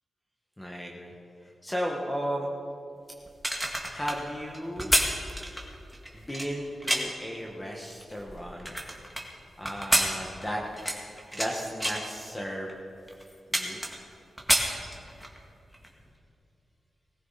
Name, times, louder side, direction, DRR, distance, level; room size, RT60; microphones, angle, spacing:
voice 1, 0.6-1.1 1.4-2.5 3.9-4.9 6.1-8.7 9.6-10.6 11.3-12.7 13.5-13.8, equal, 15° left, -1 dB, 1.5 m, -35 dB
sound 1, 3.3-7.3 7.8-9.2 9.6-11.5 11.8-12.1 12.7-12.8 13.1-14.1 14.4-15.4 15.7-15.9, right 1 dB, ahead, 2.0 m, -28 dB
20.0 x 14.5 x 4.2 m, 2.6 s
wide cardioid pair, 100°, 0 cm